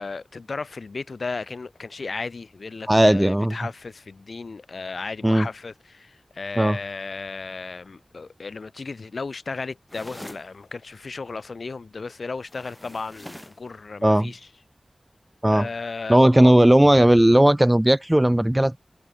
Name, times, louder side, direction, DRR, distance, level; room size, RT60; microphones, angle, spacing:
voice 1, 0.0-14.4 15.5-16.5, left 4 dB, 85° left, 1.5 m, -35 dB
voice 2, 2.9-3.6 5.2-5.5 6.6-6.8 14.0-14.3 15.4-15.7 16.1-18.8, right 1 dB, 15° right, 0.4 m, -16 dB
sound 1, 9.9-10.5 12.4-13.6, left 1 dB, 10° left, 2.0 m, -42 dB
wide cardioid pair, 75°, 0 cm